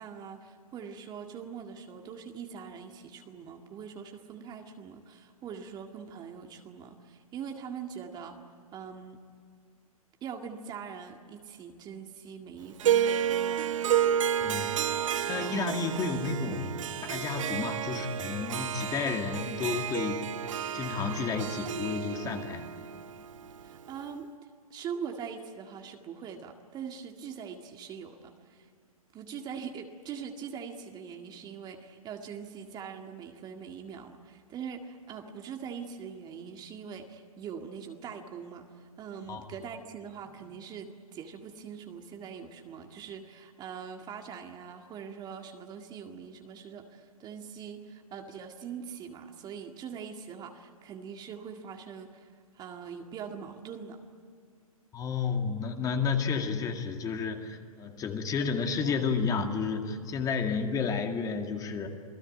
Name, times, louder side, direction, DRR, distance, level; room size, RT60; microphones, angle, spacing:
voice 1, 0.0-8.4 8.7-9.2 10.2-14.1 23.6-24.3 24.7-28.7 29.1-54.0, right 7 dB, 20° right, 4 dB, 1.9 m, -42 dB
Harp, 12.8-24.1, right 9 dB, 60° right, 1.0 m, -31 dB
voice 2, 15.3-16.7 17.0-20.2 20.6-22.7 39.3-39.5 54.9-61.9, left 5 dB, 20° left, 4 dB, 2.3 m, -31 dB
28.5 x 19.5 x 9.2 m, 2.2 s
hypercardioid pair, 125°, 19 cm